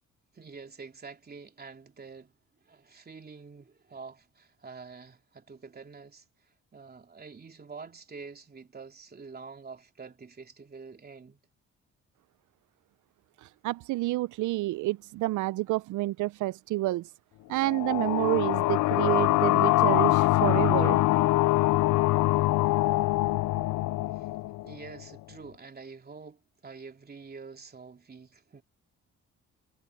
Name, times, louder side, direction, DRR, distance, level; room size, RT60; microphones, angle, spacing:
voice 1, 0.3-2.3 2.6-6.2 6.7-11.4 24.1-24.3 24.6-28.6, right 4 dB, 30° right, 3.2 m, -46 dB
voice 2, 13.4-17.1 17.5-21.0, right 18 dB, 80° right, 0.5 m, -29 dB
sound 1, 17.6-25.0, left 18 dB, 80° left, 0.5 m, -24 dB
cardioid pair, 90°, 30 cm